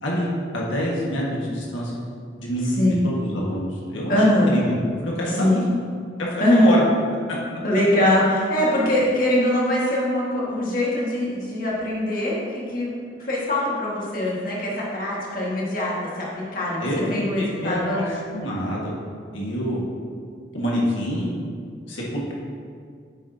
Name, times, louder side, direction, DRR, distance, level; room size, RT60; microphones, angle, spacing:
voice 1, 0.0-2.0 2.4-4.8 5.0-5.5 6.2-6.8 16.8-17.1 17.6-18.9 19.3-19.8 20.5-21.3 21.9-22.0, equal, 80° left, -4 dB, 1.5 m, -26 dB
voice 2, 2.6-3.0 4.1-4.5 5.4-5.6 6.4-6.7 7.6-12.9 13.2-18.1, left 1 dB, 45° left, -5 dB, 1.6 m, -22 dB
8.3 x 6.4 x 2.7 m, 2.1 s
head